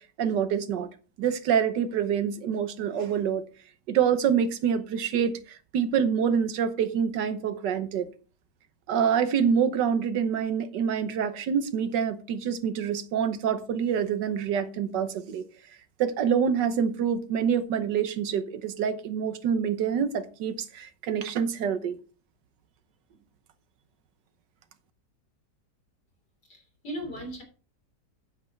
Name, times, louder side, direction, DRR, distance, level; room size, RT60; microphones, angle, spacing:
voice 1, 0.2-0.9 1.2-3.4 3.9-8.1 8.9-15.4 16.0-22.0, right 7 dB, 80° right, 1.6 m, -26 dB
voice 2, 26.5-27.4, equal, 65° left, 3.9 m, -37 dB
8.9 x 7.6 x 4.5 m
omnidirectional pair, 1.9 m